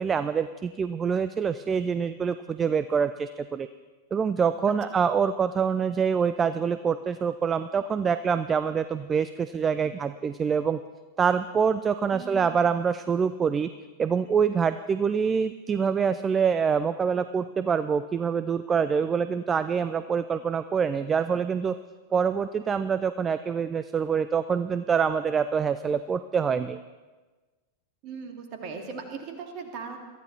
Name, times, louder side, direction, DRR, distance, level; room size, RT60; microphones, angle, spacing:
voice 1, 0.0-3.7 4.1-10.8 11.2-13.7 14.0-21.8 22.1-26.8, right 6 dB, 20° right, 13 dB, 0.4 m, -25 dB
voice 2, 12.1-12.5 28.0-30.0, right 5 dB, 40° right, 4 dB, 2.6 m, -38 dB
22.5 x 14.0 x 4.2 m, 1.3 s
figure-of-eight pair, 90°, 0 cm